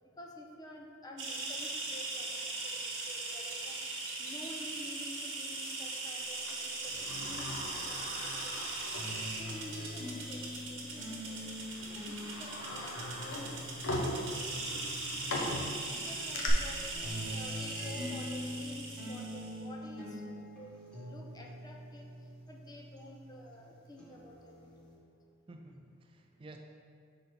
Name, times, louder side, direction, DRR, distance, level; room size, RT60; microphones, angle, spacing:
voice 1, 0.2-3.7 4.2-8.7 9.3-11.6 12.1-13.7 14.3-15.2 15.6-16.8 17.3-20.8 21.1-22.1 22.5-24.9, left 1 dB, 20° left, 0 dB, 0.6 m, -50 dB
sound 1, 1.2-19.6, right 3 dB, 70° right, 1.3 m, -40 dB
Sliding door, 6.5-9.7 10.1-10.2 11.1-11.3 11.8-16.5, left 1 dB, 85° left, 0.9 m, -40 dB
sound 2, 8.9-15.6 16.0-23.6 24.0-24.9, left 1 dB, 5° left, 1.4 m, -44 dB
voice 2, 15.8-16.1 25.5-26.6, right 2 dB, 25° right, 3 dB, 0.3 m, -52 dB
5.2 x 4.0 x 5.8 m, 2.2 s
head